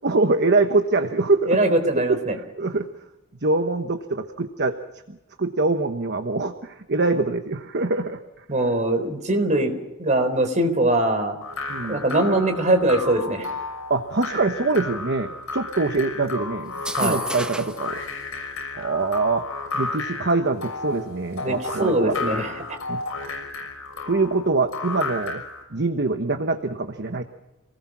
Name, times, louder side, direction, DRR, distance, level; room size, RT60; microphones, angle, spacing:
voice 1, 0.0-1.6 2.5-2.9 3.4-4.8 5.1-8.2 11.7-12.0 13.9-16.7 17.0-18.0 18.7-19.4 19.7-22.1 22.9-23.0 24.1-25.4 25.7-27.2, right 3 dB, 55° right, 6 dB, 1.2 m, -24 dB
voice 2, 1.5-2.4 8.5-11.4 11.9-13.5 16.9-17.2 21.4-21.5 21.8-22.6, right 1 dB, 35° right, 6 dB, 4.0 m, -22 dB
sound 1, 11.4-25.6, left 3 dB, 80° left, 6.1 m, -33 dB
sound 2, 16.7-17.9, right 1 dB, 5° right, 1.3 m, -31 dB
27.5 x 19.5 x 6.2 m, 0.94 s
head